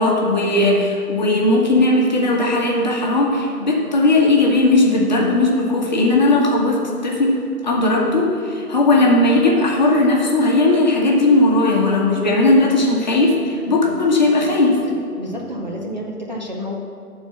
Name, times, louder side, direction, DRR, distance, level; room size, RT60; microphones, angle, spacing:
voice 1, 0.0-7.4 7.6-14.8, left 2 dB, 30° left, -1 dB, 1.2 m, -17 dB
voice 2, 15.2-16.8, equal, 30° right, -2 dB, 0.7 m, -29 dB
11.5 x 4.5 x 7.3 m, 2.3 s
figure-of-eight pair, 155°, 47 cm